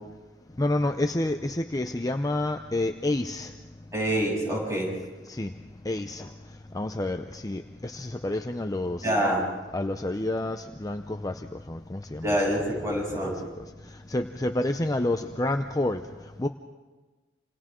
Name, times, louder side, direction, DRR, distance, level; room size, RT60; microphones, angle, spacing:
voice 1, 0.6-3.5 5.2-5.5 5.8-9.1 9.7-12.4 12.7-16.5, left 1 dB, 20° left, 6 dB, 0.6 m, -29 dB
voice 2, 3.9-4.9 9.0-9.4 12.2-13.3, right 1 dB, 15° right, -3 dB, 7.7 m, -26 dB
27.5 x 27.5 x 3.8 m, 1.3 s
head